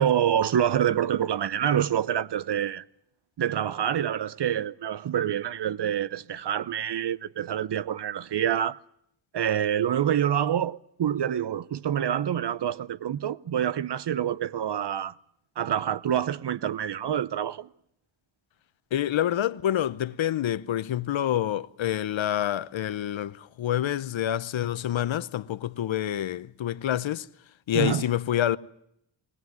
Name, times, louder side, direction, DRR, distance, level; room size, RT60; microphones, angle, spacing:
voice 1, 0.0-2.8 3.4-8.8 9.3-15.1 15.6-17.7 27.7-28.1, right 9 dB, 55° right, 0.8 m, -27 dB
voice 2, 18.9-27.3 27.7-28.6, left 11 dB, 70° left, 0.8 m, -27 dB
21.0 x 18.0 x 9.3 m
cardioid pair, 65°, 48 cm